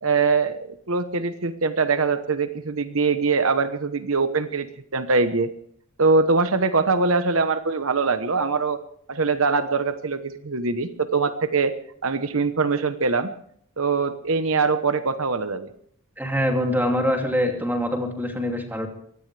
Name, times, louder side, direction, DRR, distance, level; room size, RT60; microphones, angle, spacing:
voice 1, 0.0-5.5 6.0-8.8 9.1-11.7 12.0-13.3 13.8-15.7, right 4 dB, 70° right, 10 dB, 1.1 m, -23 dB
voice 2, 16.2-18.9, equal, 10° right, 2 dB, 2.8 m, -24 dB
23.5 x 17.5 x 3.4 m, 0.63 s
head